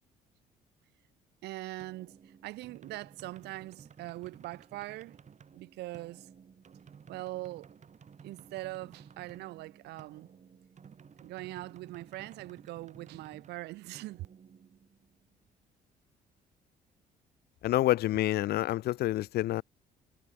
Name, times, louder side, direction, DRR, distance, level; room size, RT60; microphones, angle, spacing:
voice 1, 1.4-5.2 5.5-6.3 7.1-7.7 8.2-10.3 11.2-14.3, right 18 dB, 75° right, 1.0 m, -42 dB
sound 1, 1.8-15.3, right 7 dB, 45° right, 4.3 m, -55 dB
voice 2, 17.6-19.6, left 15 dB, 65° left, 1.0 m, -28 dB
supercardioid pair, 65°, 17 cm